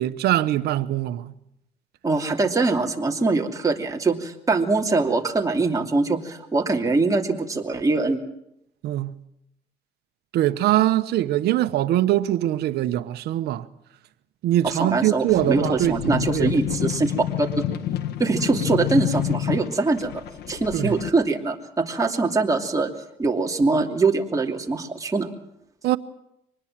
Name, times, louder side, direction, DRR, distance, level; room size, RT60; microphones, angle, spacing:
voice 1, 0.0-1.3 8.8-9.2 10.3-13.7 14.4-16.6 20.7-21.0 25.8-26.0, right 13 dB, 75° right, 1.1 m, -22 dB
voice 2, 2.0-8.2 14.6-17.5 18.2-20.1 20.5-22.9 23.2-25.3, right 3 dB, 20° right, 2.8 m, -23 dB
sound 1, 15.3-21.1, left 11 dB, 75° left, 1.7 m, -28 dB
24.5 x 20.0 x 7.5 m
cardioid pair, 110°, 17 cm